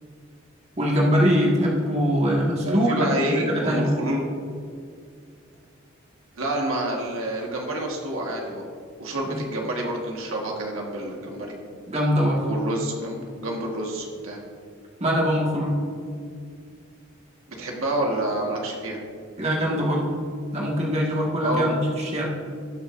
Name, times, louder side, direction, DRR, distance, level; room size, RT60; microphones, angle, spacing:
voice 1, 0.8-3.9 9.3-9.4 11.9-12.5 15.0-15.8 19.4-20.1 20.5-22.3, equal, 30° right, -3 dB, 1.7 m, -22 dB
voice 2, 2.6-4.3 6.3-8.6 9.0-11.5 12.4-14.4 17.6-19.0 21.4-21.8, right 1 dB, 80° right, -1 dB, 1.5 m, -28 dB
18.5 x 6.5 x 2.6 m, 2.2 s
head